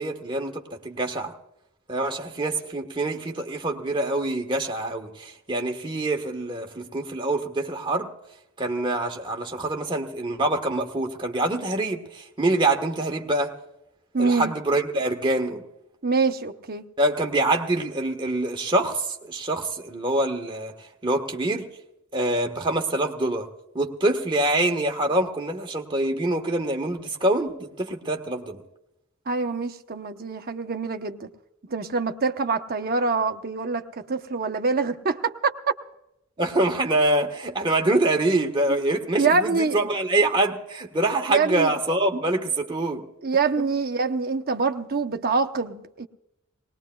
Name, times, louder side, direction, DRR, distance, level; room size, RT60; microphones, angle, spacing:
voice 1, 0.0-1.3 1.9-8.1 8.6-13.5 14.2-15.6 17.0-20.7 21.0-21.7 22.1-23.5 23.7-28.6 36.4-43.0, right 2 dB, 20° right, 1.3 m, -25 dB
voice 2, 14.1-14.5 16.0-16.8 29.3-31.3 31.7-35.6 38.7-38.8 39.2-39.9 41.3-41.7 43.2-46.1, right 4 dB, 45° right, 0.9 m, -25 dB
20.5 x 19.5 x 2.3 m
head